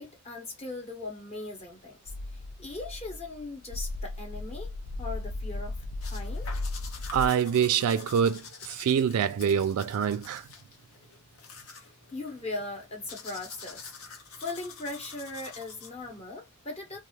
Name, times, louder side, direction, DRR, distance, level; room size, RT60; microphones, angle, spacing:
voice 1, 0.0-2.0 2.6-4.7 5.0-6.5 11.7-13.9 14.4-17.0, left 2 dB, 30° left, 0.9 m, -39 dB
sound 1, 2.1-7.3, left 2 dB, 60° left, 0.3 m, -36 dB
sound 2, 6.0-16.2, left 5 dB, 80° left, 0.8 m, -47 dB
voice 2, 7.1-10.5, right 8 dB, 90° right, 0.3 m, -25 dB
2.3 x 2.3 x 3.0 m
head